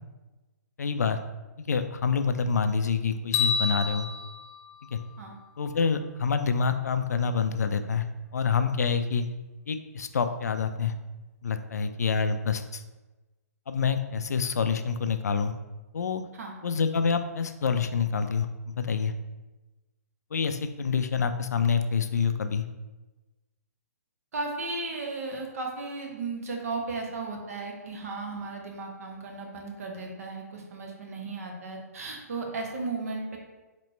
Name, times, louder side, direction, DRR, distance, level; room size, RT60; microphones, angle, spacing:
voice 1, 0.8-1.2 1.6-4.1 4.9-5.0 5.6-8.1 8.3-9.3 9.7-10.9 11.4-12.8 13.7-15.5 15.9-16.2 16.6-18.5 18.8-19.1 20.3-22.6, left 5 dB, 70° left, 9 dB, 0.3 m, -27 dB
sound 1, 3.3-5.6, left 5 dB, 40° left, 0.8 m, -30 dB
voice 2, 24.3-33.4, right 3 dB, 60° right, 1 dB, 1.0 m, -35 dB
4.2 x 3.0 x 3.1 m, 1.1 s
figure-of-eight pair, 125°, 9 cm